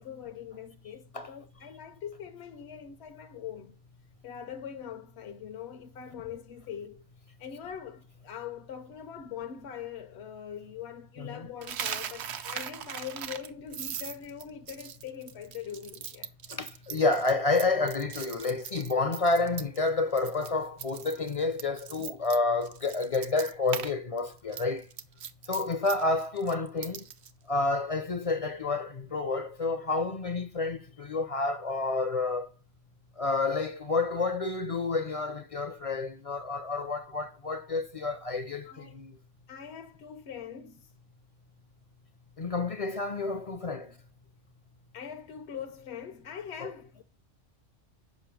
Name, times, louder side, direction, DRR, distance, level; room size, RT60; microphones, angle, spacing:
voice 1, 0.0-3.7 4.2-7.0 7.4-16.3 38.6-39.0 39.5-40.9 44.9-47.0, left 8 dB, 70° left, 0.9 m, -42 dB
voice 2, 11.2-11.5 16.5-24.9 25.5-27.1 27.5-32.5 33.2-39.2 42.4-44.0 46.6-46.7, left 3 dB, 40° left, 0.5 m, -29 dB
Coin (dropping), 11.6-19.9 20.2-20.5 20.8-23.9 24.2-27.3, right 8 dB, 70° right, 0.9 m, -39 dB
7.5 x 5.4 x 5.1 m
omnidirectional pair, 1.2 m